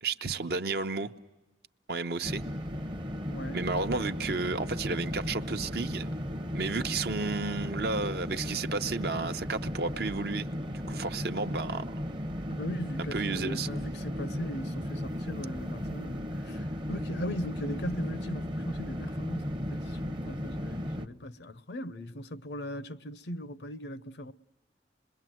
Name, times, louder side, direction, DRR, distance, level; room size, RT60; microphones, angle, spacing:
voice 1, 0.0-1.1 1.9-2.4 3.5-6.2 6.5-10.5 10.7-11.9 13.1-13.7, right 3 dB, 60° right, 0.8 m, -32 dB
sound 1, 2.2-21.1, equal, 25° right, 0.8 m, -35 dB
voice 2, 3.3-3.7 12.5-24.3, equal, 65° left, 0.7 m, -39 dB
26.5 x 22.0 x 7.7 m
head